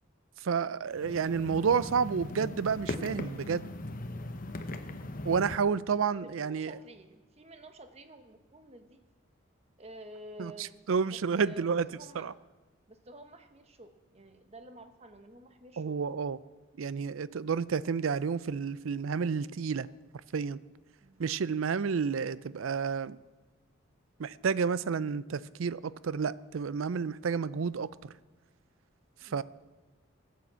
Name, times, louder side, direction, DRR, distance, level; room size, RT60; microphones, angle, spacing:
voice 1, 0.4-3.7 5.2-6.8 10.4-11.9 12.2-12.3 15.8-16.4 16.8-19.9 20.3-20.6 21.2-23.2 24.2-27.9 29.2-29.4, right 6 dB, 85° right, 0.5 m, -30 dB
sound 1, 0.9-5.6, left 2 dB, 45° left, 0.9 m, -39 dB
voice 2, 6.1-9.0 9.8-12.3 12.9-16.0 21.0-21.2 29.2-29.4, right 1 dB, 30° right, 1.1 m, -51 dB
16.5 x 8.5 x 7.5 m
head